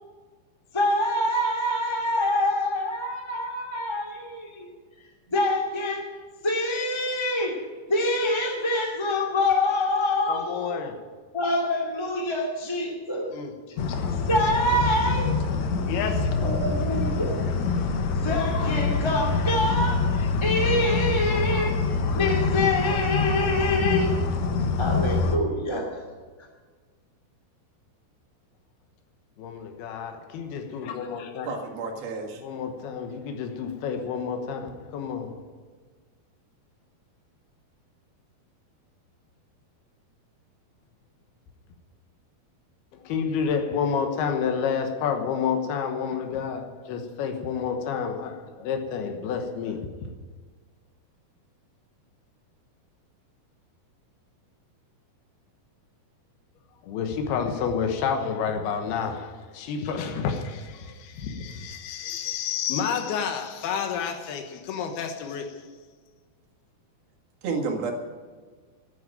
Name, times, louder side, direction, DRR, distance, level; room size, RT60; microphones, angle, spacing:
voice 1, 0.7-4.7 5.3-6.1 6.4-7.6 7.9-10.8 11.3-13.3 13.7-13.8 14.3-15.4 16.0-17.4 18.1-21.8 22.1-24.1 24.8-26.0, left 1 dB, 10° left, 0 dB, 1.8 m, -26 dB
voice 2, 10.3-11.0 13.3-14.2 15.8-16.5 29.4-31.5 32.4-35.4 42.9-50.1 56.8-65.5, left 6 dB, 85° left, 5 dB, 3.2 m, -30 dB
sound 1, 13.8-25.4, left 4 dB, 65° left, 1.9 m, -25 dB
voice 3, 31.5-32.4 67.4-67.9, right 4 dB, 75° right, 2 dB, 3.8 m, -30 dB
12.0 x 9.9 x 9.0 m, 1.5 s
omnidirectional pair, 4.4 m